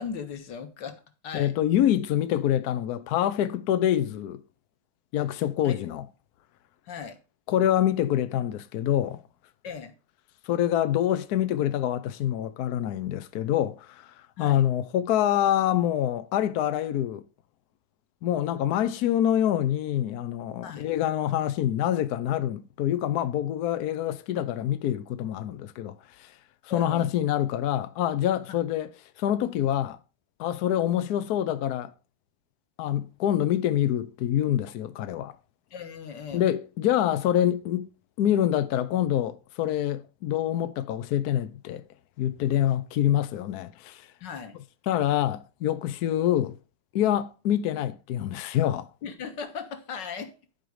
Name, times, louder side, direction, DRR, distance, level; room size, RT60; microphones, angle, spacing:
voice 1, 0.0-1.5 5.6-5.8 6.8-7.2 9.6-9.9 14.4-14.7 20.6-20.9 26.7-27.1 35.7-36.5 44.2-44.6 49.0-50.3, left 6 dB, 55° left, 1.8 m, -38 dB
voice 2, 1.3-4.4 5.1-6.0 7.5-9.2 10.5-14.1 14.4-17.2 18.2-26.3 26.7-28.9 29.2-30.0 30.4-31.9 32.8-35.3 36.3-37.9 38.2-41.8 42.2-44.1 44.9-46.6 46.9-48.9, left 11 dB, 80° left, 0.8 m, -26 dB
11.0 x 5.2 x 4.7 m
omnidirectional pair, 2.4 m